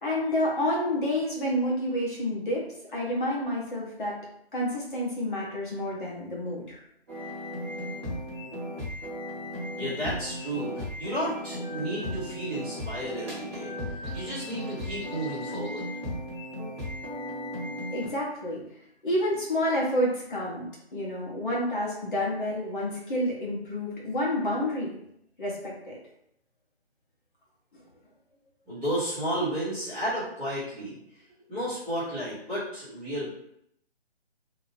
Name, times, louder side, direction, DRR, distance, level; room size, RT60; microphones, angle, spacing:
voice 1, 0.0-4.2 4.5-6.8 17.9-18.7 19.0-24.9 25.4-26.0 27.7-27.8, left 1 dB, 50° left, -4 dB, 1.1 m, -29 dB
sound 1, 7.1-18.1, equal, 25° right, 0.8 m, -36 dB
voice 2, 9.8-15.9 28.7-31.0 31.5-33.4, equal, 5° left, -18 dB, 0.7 m, -32 dB
2.8 x 2.1 x 3.2 m, 0.73 s
figure-of-eight pair, 150°, 33 cm